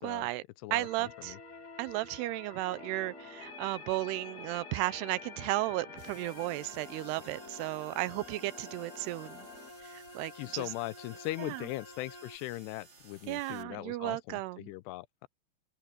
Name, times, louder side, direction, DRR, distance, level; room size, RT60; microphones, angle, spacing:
voice 1, 0.0-0.4 0.7-1.4 1.8-9.5 9.9-10.7 11.4-11.6 13.3-14.7, right 18 dB, 80° right, 2.7 m, -34 dB
voice 2, 0.6-1.4 10.4-15.3, left 18 dB, 85° left, 2.7 m, -40 dB
sound 1, 0.8-12.4, left 4 dB, 45° left, 7.0 m, -49 dB
sound 2, 2.7-9.7, left 3 dB, 30° left, 2.3 m, -53 dB
sound 3, 6.0-13.6, right 3 dB, 25° right, 5.4 m, -58 dB
open air
omnidirectional pair, 4.8 m